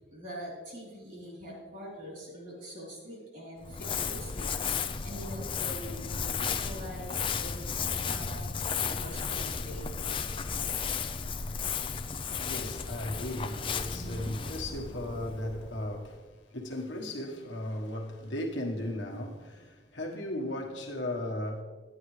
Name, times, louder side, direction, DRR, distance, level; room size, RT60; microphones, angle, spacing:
voice 1, 0.0-4.5 5.0-10.2 13.9-14.4, equal, 45° right, 3.4 m, -44 dB
Crumpling crinkling, 3.6-16.1, left 6 dB, 25° left, 0.4 m, -34 dB
voice 2, 11.1-21.6, left 1 dB, 70° left, 1.4 m, -37 dB
10.5 x 10.5 x 3.2 m
head